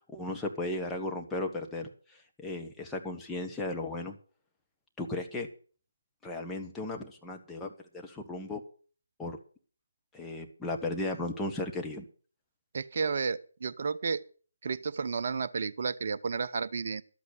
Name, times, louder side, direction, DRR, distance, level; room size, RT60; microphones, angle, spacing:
voice 1, 0.1-1.9 2.4-4.1 5.0-5.5 6.2-8.6 9.2-9.4 10.1-12.0, left 2 dB, 5° left, 1 dB, 1.3 m, -35 dB
voice 2, 12.7-14.2 14.6-17.0, right 5 dB, 45° right, 11 dB, 0.7 m, -32 dB
12.0 x 8.4 x 6.6 m, 0.41 s
figure-of-eight pair, 150°, 0 cm